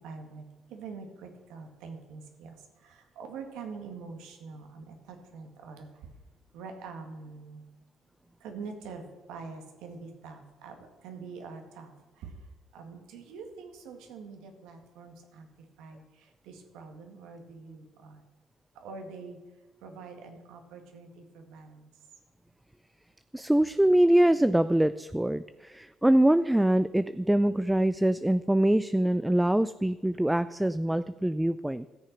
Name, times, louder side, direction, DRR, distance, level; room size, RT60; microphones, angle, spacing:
voice 1, 0.0-0.4 0.7-2.5 2.8-5.9 6.5-7.6 8.4-11.9 12.2-12.3 12.7-15.5 15.8-16.0 16.5-18.2 18.8-19.4 19.8-21.9, right 4 dB, 85° right, 4 dB, 1.9 m, -44 dB
voice 2, 23.3-31.9, right 1 dB, 5° right, 14 dB, 0.4 m, -24 dB
13.0 x 6.8 x 6.0 m, 1.2 s
supercardioid pair, 80°, 0 cm